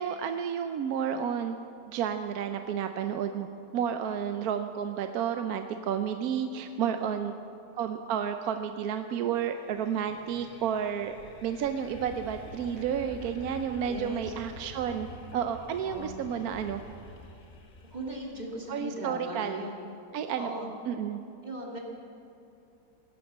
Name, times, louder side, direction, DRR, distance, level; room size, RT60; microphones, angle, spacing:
voice 1, 0.0-1.6 1.9-3.5 3.7-7.3 7.7-11.2 11.4-15.1 15.3-16.8 18.7-19.6 20.1-20.5 20.9-21.2, right 8 dB, 75° right, 7 dB, 1.1 m, -31 dB
voice 2, 6.8-7.2 13.9-14.2 15.8-16.2 17.9-19.8 20.4-20.7 21.4-21.8, right 1 dB, 25° right, -1 dB, 2.4 m, -38 dB
sound 1, 9.4-18.5, left 2 dB, 60° left, 1.8 m, -48 dB
17.5 x 10.0 x 7.3 m, 2.7 s
omnidirectional pair, 1.7 m